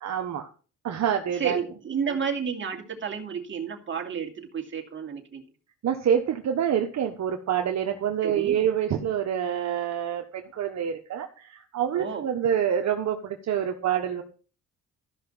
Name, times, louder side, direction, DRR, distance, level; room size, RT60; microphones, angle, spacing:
voice 1, 0.0-0.5 0.8-1.6 5.8-14.2, right 9 dB, 65° right, 4 dB, 1.3 m, -27 dB
voice 2, 1.3-5.4 8.2-8.6 11.9-12.3, right 7 dB, 40° right, 2 dB, 2.6 m, -31 dB
14.0 x 5.8 x 5.6 m, 0.38 s
cardioid pair, 90°, 30 cm